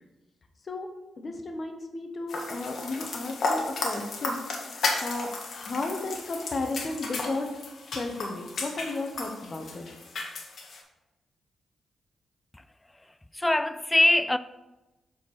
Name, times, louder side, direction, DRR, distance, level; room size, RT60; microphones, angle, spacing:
voice 1, 1.2-7.6 7.9-9.8, left 2 dB, 45° left, 1.1 m, -34 dB
sound 1, 2.3-10.8, left 3 dB, 65° left, 1.4 m, -34 dB
voice 2, 13.3-14.4, left 1 dB, 10° left, 0.3 m, -22 dB
7.4 x 4.5 x 4.2 m
cardioid pair, 85°, 0 cm